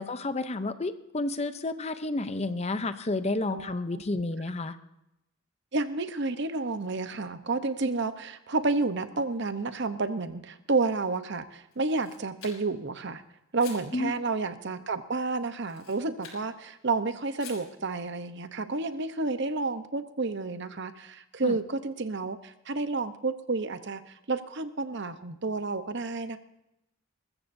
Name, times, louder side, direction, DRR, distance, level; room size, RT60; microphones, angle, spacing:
voice 1, 0.0-4.8 13.9-14.1 21.4-21.5, left 2 dB, 30° left, 11 dB, 0.6 m, -31 dB
voice 2, 3.5-4.0 5.7-13.2 13.5-26.4, right 3 dB, 55° right, 11 dB, 0.9 m, -30 dB
Camera, 11.7-12.9 13.6-13.9 15.6-16.4 17.4-17.7, left 6 dB, 70° left, 5.6 m, -47 dB
21.5 x 14.0 x 2.7 m, 0.86 s
head